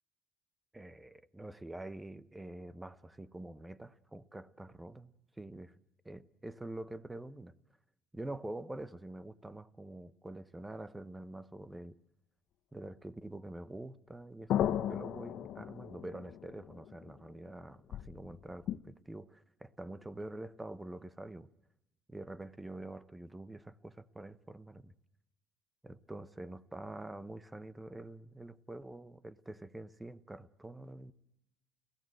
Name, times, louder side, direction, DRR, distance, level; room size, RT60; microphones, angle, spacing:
voice 1, 0.7-5.7 6.0-7.5 8.1-12.0 12.7-21.5 22.1-24.9 25.8-31.1, right 1 dB, 10° right, 1.0 m, -46 dB
sound 1, 14.5-17.6 17.9-18.8, left 11 dB, 65° left, 0.9 m, -36 dB
29.5 x 16.5 x 7.9 m
cardioid pair, 130°, 0 cm